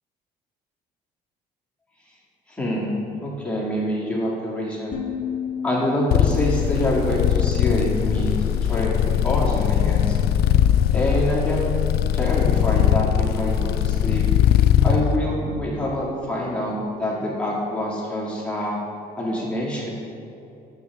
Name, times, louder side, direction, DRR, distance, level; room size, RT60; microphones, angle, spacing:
voice 1, 2.5-5.0 5.6-10.2 10.9-11.7 12.1-14.2 14.8-18.8 19.2-19.9, left 1 dB, 5° left, -6 dB, 2.1 m, -26 dB
sound 1, 4.9-10.1, left 6 dB, 45° left, 1.0 m, -35 dB
sound 2, 6.1-15.0, left 10 dB, 70° left, 0.4 m, -20 dB
8.4 x 6.5 x 4.7 m, 2.8 s
cardioid pair, 110°, 17 cm